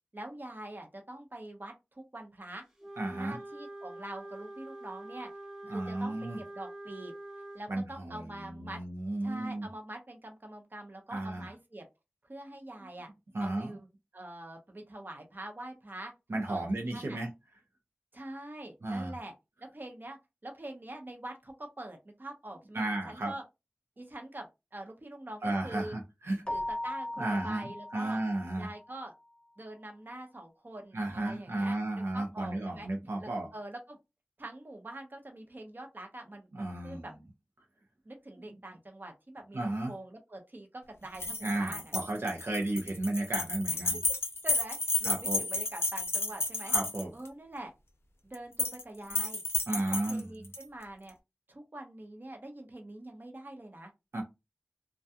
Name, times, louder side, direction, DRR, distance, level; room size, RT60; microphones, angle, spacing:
voice 1, 0.1-2.6 3.2-5.3 5.7-7.1 7.5-8.8 9.2-11.9 12.2-13.1 13.4-13.9 14.1-16.1 16.5-16.6 16.9-17.2 18.1-19.3 19.7-23.4 24.0-26.0 26.5-28.2 28.6-29.1 29.6-32.9 33.2-34.0 34.4-37.1 38.0-41.9 43.9-44.0 44.4-46.7 47.1-47.7 48.2-49.4 49.7-51.1 51.5-53.9, right 1 dB, 50° right, 3 dB, 0.8 m, -44 dB
Wind instrument woodwind instrument, 2.8-7.7, right 1 dB, 10° right, 0.8 m, -45 dB
voice 2, 3.0-3.4 5.7-6.4 7.7-9.7 11.1-11.5 13.3-13.7 16.3-17.3 18.8-19.1 22.7-23.3 25.4-26.4 27.2-28.7 30.9-33.5 36.5-37.1 39.5-39.9 41.4-44.0 45.0-45.4 46.6-47.1 49.1-49.2 49.7-50.3 54.1-54.2, right 2 dB, 80° right, 1 dB, 0.6 m, -33 dB
Keyboard (musical), 26.5-28.9, left 1 dB, 15° left, 0.4 m, -38 dB
sound 1, 41.1-47.3 48.3-48.8 49.1-50.6, left 2 dB, 70° left, 0.5 m, -32 dB
2.3 x 2.2 x 2.7 m, 0.23 s
wide cardioid pair, 40°, 4 cm